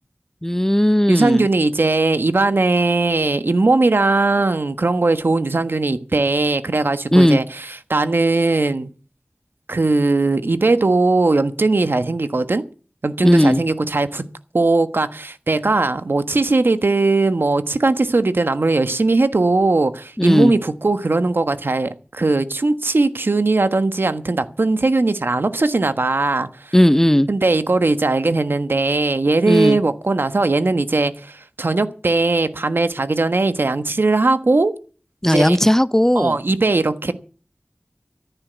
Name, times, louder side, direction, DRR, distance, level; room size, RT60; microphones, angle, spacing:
voice 1, 0.4-1.5 7.1-7.4 13.2-13.6 20.2-20.5 26.7-27.3 29.4-29.8 35.2-36.4, equal, 10° left, 0.6 m, -15 dB
voice 2, 1.1-8.9 9.7-12.6 13.0-14.2 14.5-26.7 27.3-34.7 35.3-35.6 36.1-37.1, right 3 dB, 85° right, 1.4 m, -19 dB
14.5 x 9.8 x 7.0 m
wide cardioid pair, 50°, 4 cm